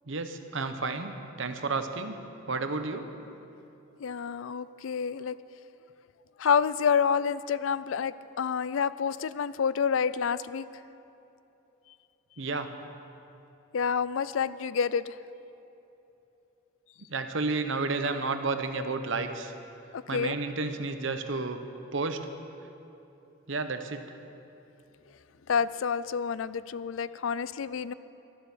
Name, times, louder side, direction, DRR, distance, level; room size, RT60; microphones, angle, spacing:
voice 1, 0.1-2.2 2.5-3.0 12.4-12.7 17.1-19.5 20.1-21.6 21.9-22.2 23.5-24.0, right 3 dB, 70° right, 8 dB, 1.0 m, -31 dB
voice 2, 4.0-5.4 6.4-10.7 13.7-15.2 19.9-20.4 25.5-27.9, left 6 dB, 80° left, 17 dB, 0.4 m, -28 dB
12.5 x 12.0 x 7.1 m, 3.0 s
head